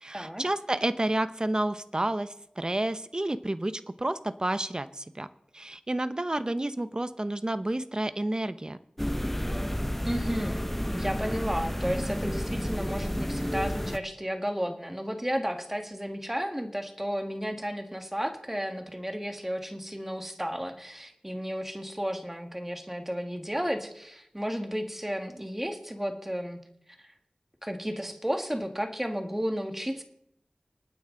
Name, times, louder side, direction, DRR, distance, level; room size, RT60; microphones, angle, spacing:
voice 1, 0.0-5.3 5.5-8.8, right 1 dB, 30° right, 13 dB, 0.8 m, -30 dB
sound 1, 9.0-14.0, equal, 5° left, 0.7 m, -31 dB
voice 2, 10.1-26.6 27.0-27.1 27.6-30.0, equal, 10° right, 6 dB, 1.8 m, -33 dB
26.0 x 9.4 x 3.9 m, 0.73 s
wide cardioid pair, 65°, 3 cm